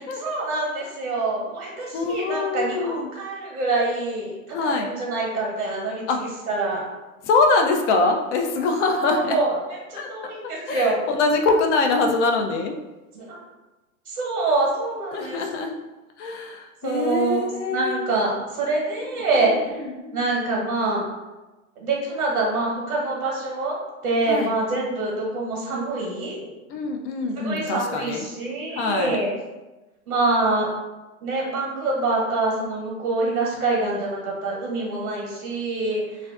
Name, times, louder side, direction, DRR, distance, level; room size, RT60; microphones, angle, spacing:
voice 1, 0.2-6.0 6.5-6.8 8.9-11.0 13.1-13.4 14.1-15.4 16.8-19.8 20.1-21.0 21.8-26.5 27.4-29.3 30.1-30.7 31.2-36.3, right 2 dB, 80° right, -3 dB, 0.9 m, -25 dB
voice 2, 1.9-3.1 4.5-4.9 6.1-6.2 7.2-9.4 10.0-12.7 15.1-15.8 16.2-18.0 19.3-20.3 24.3-24.5 26.7-28.2 28.7-29.2, left 3 dB, 55° left, 3 dB, 0.5 m, -24 dB
2.4 x 2.2 x 2.4 m, 1.1 s
hypercardioid pair, 100°, 43 cm